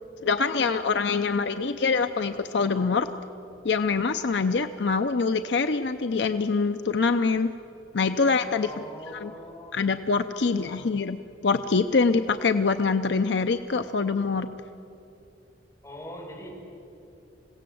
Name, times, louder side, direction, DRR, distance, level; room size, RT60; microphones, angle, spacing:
voice 1, 0.2-3.1 3.6-7.5 7.9-8.7 9.2-9.3 9.7-11.2 11.4-14.5, left 4 dB, 65° left, 9 dB, 0.6 m, -24 dB
voice 2, 8.6-9.8 10.4-10.9 15.8-16.5, left 1 dB, 15° left, -3 dB, 5.5 m, -42 dB
27.0 x 17.0 x 7.8 m, 2.8 s
head